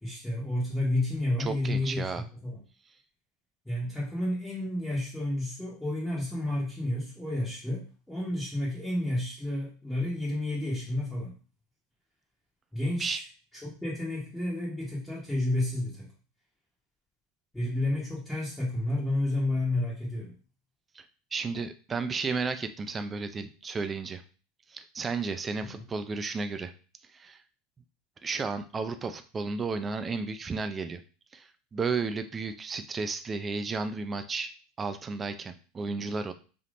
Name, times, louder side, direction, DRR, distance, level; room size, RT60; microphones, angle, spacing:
voice 1, 0.0-2.0 2.4-2.6 3.6-11.3 12.7-13.2 13.6-16.1 17.5-20.3 25.6-25.8, left 1 dB, 5° left, -9 dB, 1.2 m, -31 dB
voice 2, 1.4-2.2 13.0-13.2 21.0-21.1 21.3-24.2 24.7-26.7 27.1-27.4 28.2-31.0 31.3-34.5 34.8-36.3, right 4 dB, 20° right, 9 dB, 0.4 m, -33 dB
3.4 x 2.7 x 2.5 m, 0.37 s
supercardioid pair, 120°, 0 cm